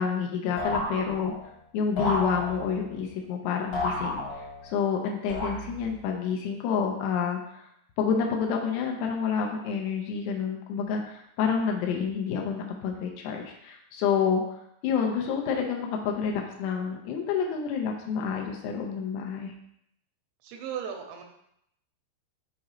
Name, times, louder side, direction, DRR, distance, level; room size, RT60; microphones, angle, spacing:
voice 1, 0.0-1.3 1.7-7.7 8.0-14.4 14.8-19.5, left 6 dB, 90° left, 2 dB, 2.3 m, -29 dB
sound 1, 0.6-1.5 2.0-2.9 3.7-4.7 5.3-6.0, left 1 dB, 65° left, 1.4 m, -32 dB
voice 2, 20.4-21.2, right 8 dB, 90° right, 3 dB, 3.4 m, -36 dB
7.6 x 4.8 x 3.1 m, 0.76 s
omnidirectional pair, 5.6 m